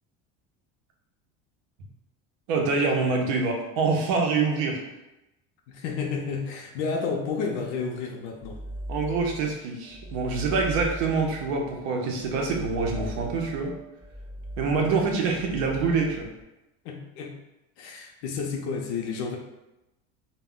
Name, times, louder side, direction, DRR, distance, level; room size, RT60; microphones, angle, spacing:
voice 1, 2.5-4.8 8.9-13.7 14.6-16.3, right 4 dB, 75° right, 1 dB, 0.6 m, -25 dB
voice 2, 5.7-8.6 14.7-15.1 16.8-17.3 17.8-19.4, left 5 dB, 80° left, 2 dB, 0.5 m, -31 dB
sound 1, 8.4-9.6 9.8-16.4, equal, 5° left, 0.7 m, -39 dB
2.3 x 2.1 x 3.5 m, 0.94 s
cardioid pair, 165°, 33 cm